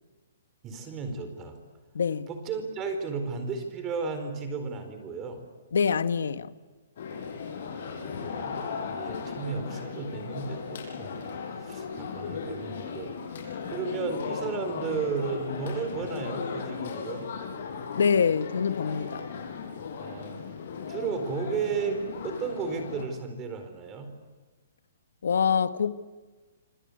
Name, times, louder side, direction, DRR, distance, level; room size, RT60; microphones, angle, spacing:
voice 1, 0.6-1.6 2.3-5.4 7.6-13.1 13.7-17.3 20.0-20.4 20.9-22.0 22.2-24.1, right 5 dB, 20° right, 7 dB, 4.4 m, -34 dB
voice 2, 1.9-2.3 5.7-6.5 17.9-19.2 25.2-25.9, left 6 dB, 85° left, 12 dB, 1.5 m, -25 dB
sound 1, 7.0-23.0, left 5 dB, 50° left, 7.5 m, -37 dB
26.5 x 26.5 x 8.1 m, 1.3 s
hypercardioid pair, 170°, 0 cm